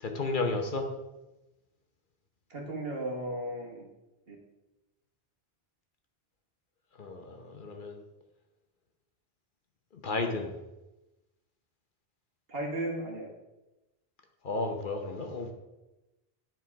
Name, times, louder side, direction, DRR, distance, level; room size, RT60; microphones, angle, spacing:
voice 1, 0.0-0.9 7.0-8.0 9.9-10.5 14.4-15.5, left 3 dB, 55° left, 4 dB, 1.0 m, -33 dB
voice 2, 2.5-3.8 4.3-4.4 12.5-13.3, right 1 dB, 65° right, -1 dB, 1.9 m, -35 dB
9.8 x 4.6 x 4.7 m, 1.0 s
omnidirectional pair, 1.1 m